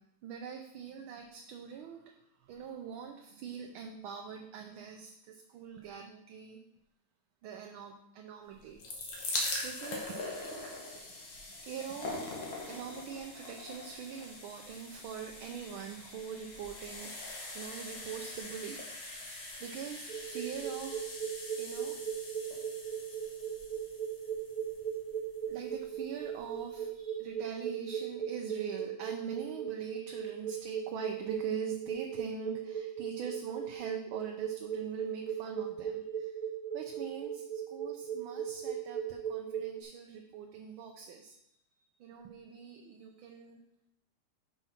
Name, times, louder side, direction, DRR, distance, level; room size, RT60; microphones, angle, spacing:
voice 1, 0.2-2.1 2.4-6.6 7.4-8.8 9.1-9.2 9.6-10.2 11.0-12.2 12.7-17.1 17.5-21.1 21.6-22.0 25.5-36.4 36.7-41.5 42.0-43.6, right 7 dB, 75° right, 3 dB, 1.5 m, -43 dB
sound 1, 8.5-25.6 26.3-26.4 26.6-26.7, left 2 dB, 70° left, 2.2 m, -42 dB
sound 2, 20.1-39.8, right 8 dB, 50° right, 1.3 m, -37 dB
6.0 x 5.5 x 5.7 m, 0.78 s
omnidirectional pair, 2.3 m